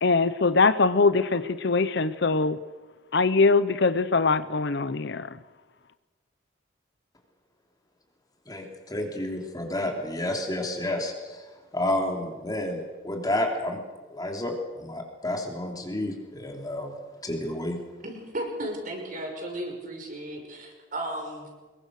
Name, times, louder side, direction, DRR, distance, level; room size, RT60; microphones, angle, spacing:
voice 1, 0.0-2.6 3.1-5.4, left 4 dB, 60° left, 13 dB, 0.8 m, -22 dB
voice 2, 8.5-11.5 11.7-13.8 14.1-16.9 17.2-17.8, left 1 dB, 20° left, 2 dB, 3.4 m, -30 dB
voice 3, 18.0-21.5, right 1 dB, 45° right, 2 dB, 5.9 m, -35 dB
25.5 x 22.0 x 6.6 m, 1.3 s
head